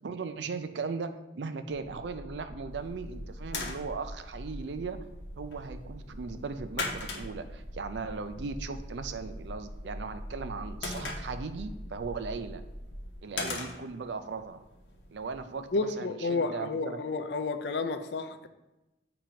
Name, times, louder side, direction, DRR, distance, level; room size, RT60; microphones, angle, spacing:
voice 1, 0.0-5.0 5.4-12.6 13.2-14.6 15.1-17.0, right 4 dB, 75° right, 0.4 m, -38 dB
sound 1, 1.7-13.2, equal, 40° left, 1.1 m, -43 dB
sound 2, 2.7-15.8, left 3 dB, 85° left, 0.9 m, -43 dB
voice 2, 15.7-18.5, left 3 dB, 65° left, 0.4 m, -31 dB
7.2 x 2.9 x 5.0 m
head